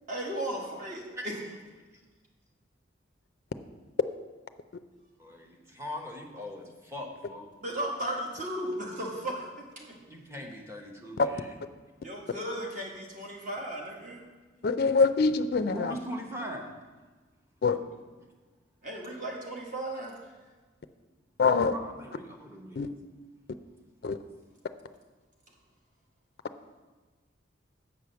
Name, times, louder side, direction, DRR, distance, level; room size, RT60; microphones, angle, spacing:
voice 1, 0.1-1.4 7.6-9.5 9.7-9.9 12.0-14.2 18.8-20.2, right 1 dB, 40° right, -1 dB, 1.6 m, -35 dB
voice 2, 5.2-7.5 10.1-11.2 15.7-16.7 21.7-22.8, equal, 15° right, 1 dB, 0.9 m, -40 dB
voice 3, 14.6-16.0 17.6-17.8 21.4-21.8 22.8-22.9 24.0-24.2, left 4 dB, 50° left, 10 dB, 0.4 m, -24 dB
7.5 x 4.8 x 6.9 m, 1.3 s
head